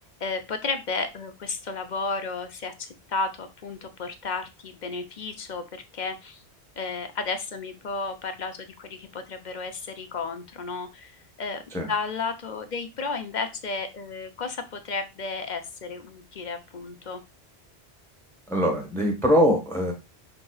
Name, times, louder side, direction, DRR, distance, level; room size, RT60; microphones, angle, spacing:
voice 1, 0.2-6.4 6.8-11.6 11.9-17.2, left 4 dB, 50° left, 8 dB, 0.7 m, -33 dB
voice 2, 18.5-19.9, equal, ahead, 1 dB, 1.0 m, -22 dB
6.0 x 3.6 x 2.3 m, 0.25 s
omnidirectional pair, 1.1 m